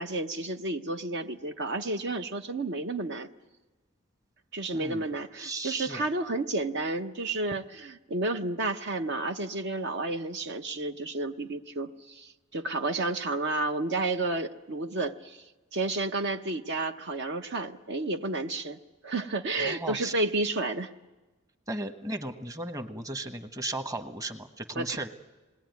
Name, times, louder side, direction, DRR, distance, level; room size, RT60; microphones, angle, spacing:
voice 1, 0.0-3.3 4.5-15.4 15.7-18.8 19.0-20.9 24.8-25.0, right 2 dB, 60° right, 6 dB, 0.8 m, -31 dB
voice 2, 4.7-5.1 5.4-6.1 19.6-20.1 21.7-25.1, right 2 dB, 15° right, 7 dB, 1.1 m, -36 dB
26.5 x 20.0 x 9.4 m, 1.2 s
head